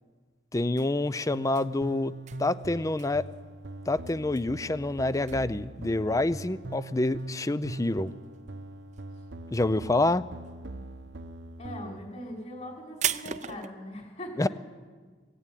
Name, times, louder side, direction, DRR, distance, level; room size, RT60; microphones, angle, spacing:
voice 1, 0.5-2.1 2.4-3.3 3.9-8.1 9.5-10.3 14.4-14.5, left 2 dB, 20° left, 16 dB, 0.5 m, -27 dB
sound 1, 0.6-8.5 8.8-9.5 9.8-13.7, right 10 dB, 40° right, 0.6 m, -38 dB
sound 2, 1.3-12.0, right 2 dB, 75° right, 1.0 m, -42 dB
voice 2, 11.6-14.5, left 1 dB, 40° left, 0 dB, 5.3 m, -40 dB
20.5 x 17.0 x 9.2 m, 1.4 s
head